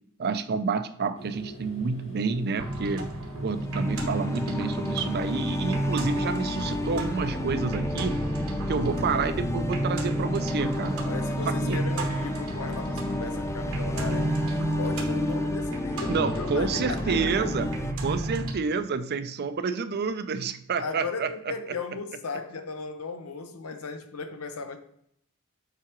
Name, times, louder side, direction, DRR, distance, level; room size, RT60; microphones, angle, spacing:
voice 1, 0.2-3.1 3.4-8.2 8.7-11.0 11.5-11.8 16.1-17.7 18.0-21.3, right 5 dB, 50° right, 0.5 m, -29 dB
sound 1, 1.1-8.1, equal, 60° left, 2.3 m, -44 dB
Fish - Cinematic soundtrack background music, 2.6-18.5, right 1 dB, 70° right, 1.1 m, -31 dB
sound 2, 3.3-17.9, left 2 dB, 15° left, 0.3 m, -32 dB
voice 2, 11.0-17.5 20.8-24.8, left 4 dB, 85° left, 0.8 m, -37 dB
7.5 x 4.8 x 3.0 m
head